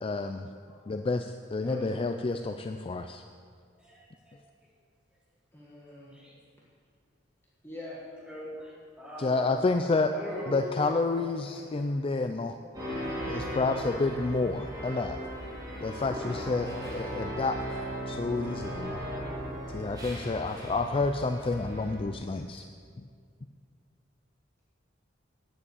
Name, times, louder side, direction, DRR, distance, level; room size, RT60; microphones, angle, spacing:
voice 1, 0.0-0.5 0.9-3.2 9.2-10.1 10.5-12.6 13.3-15.2 15.8-17.6 18.1-19.0 19.7-22.6 23.0-23.1, left 3 dB, 30° left, 7 dB, 0.4 m, -29 dB
voice 2, 1.6-2.0 5.5-6.2 7.6-8.0 10.3-11.6 12.4-12.7, left 1 dB, 15° left, -6 dB, 1.6 m, -44 dB
voice 3, 3.8-4.4 6.1-6.3 8.2-9.6 10.1-10.8, left 1 dB, 5° right, -8 dB, 3.7 m, -41 dB
sound 1, 12.7-22.0, equal, 20° right, 3.3 m, -37 dB
9.7 x 7.9 x 8.2 m, 2.1 s
head